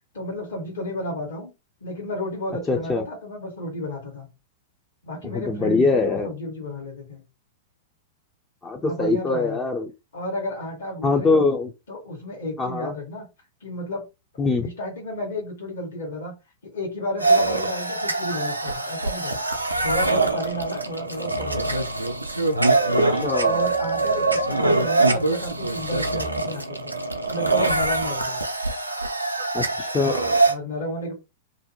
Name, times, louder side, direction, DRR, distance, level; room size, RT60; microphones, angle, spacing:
voice 1, 0.1-1.5 1.8-4.3 5.0-7.2 8.9-9.6 10.1-11.5 11.9-13.3 13.6-14.0 14.6-16.3 16.6-19.4 19.8-21.9 23.4-26.9 27.2-28.4 30.5-31.1, left 1 dB, 65° left, -1 dB, 1.1 m, -32 dB
voice 2, 2.7-3.0 5.3-6.3 8.6-9.9 11.0-11.7 12.6-12.9 14.4-14.7 23.0-23.6 29.5-30.4, left 3 dB, 15° left, 3 dB, 0.4 m, -23 dB
sound 1, 17.2-30.5, right 3 dB, 90° right, 0.4 m, -23 dB
2.5 x 2.0 x 2.7 m, 0.26 s
figure-of-eight pair, 100°, 0 cm